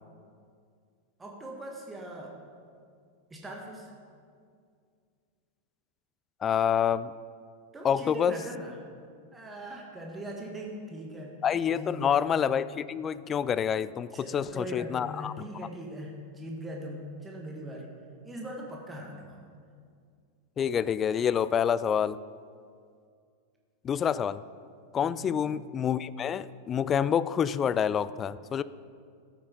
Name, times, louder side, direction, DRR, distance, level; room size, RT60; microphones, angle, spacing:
voice 1, 1.2-2.4 3.3-3.9 7.7-8.8 9.3-11.4 11.7-12.2 14.1-17.9 18.2-19.4 25.0-25.4, right 1 dB, 10° right, -1 dB, 1.8 m, -40 dB
voice 2, 6.4-7.1 7.8-8.3 11.4-15.3 20.6-22.2 23.8-24.4 24.9-28.6, left 8 dB, 25° left, 17 dB, 0.3 m, -27 dB
13.5 x 8.7 x 5.2 m, 2.2 s
figure-of-eight pair, 90°, 0 cm